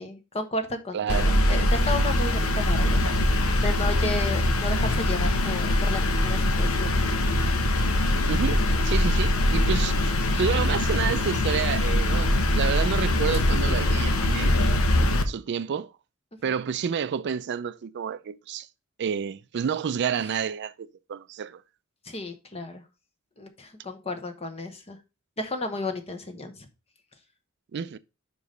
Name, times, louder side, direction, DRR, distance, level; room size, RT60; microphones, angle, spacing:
voice 1, 0.0-7.0 16.5-16.6 22.0-22.8 23.4-25.0 25.4-26.7, left 2 dB, 30° left, 1.1 m, -33 dB
voice 2, 0.9-1.3 8.3-14.5 15.3-15.9 16.4-18.7 19.0-21.6 27.7-28.0, right 7 dB, 55° right, 0.4 m, -29 dB
sound 1, 1.1-15.2, left 1 dB, 75° left, 0.9 m, -23 dB
5.4 x 4.8 x 5.1 m
head